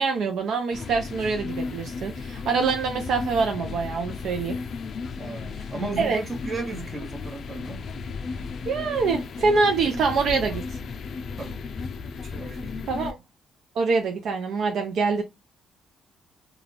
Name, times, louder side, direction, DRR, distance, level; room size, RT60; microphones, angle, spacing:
voice 1, 0.0-4.6 6.0-6.2 8.6-10.8 12.9-13.1 13.8-15.2, right 4 dB, 70° right, 0.5 m, -25 dB
sound 1, 0.7-13.1, left 4 dB, 55° left, 0.3 m, -35 dB
voice 2, 5.2-7.8 11.4-11.6 12.2-12.9, right 3 dB, 35° right, 1.0 m, -35 dB
2.4 x 2.3 x 3.1 m
cardioid pair, 90°, 0 cm